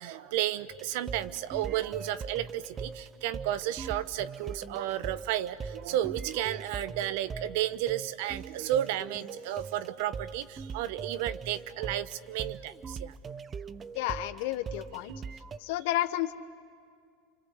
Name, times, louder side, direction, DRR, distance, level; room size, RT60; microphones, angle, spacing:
voice 1, 0.0-13.1, right 12 dB, 70° right, 15 dB, 1.0 m, -32 dB
sound 1, 0.7-15.6, right 5 dB, 25° right, 0.7 m, -41 dB
voice 2, 13.9-15.1 15.6-16.3, left 14 dB, 70° left, 11 dB, 1.2 m, -31 dB
29.0 x 25.0 x 7.9 m, 2.3 s
supercardioid pair, 110°, 0 cm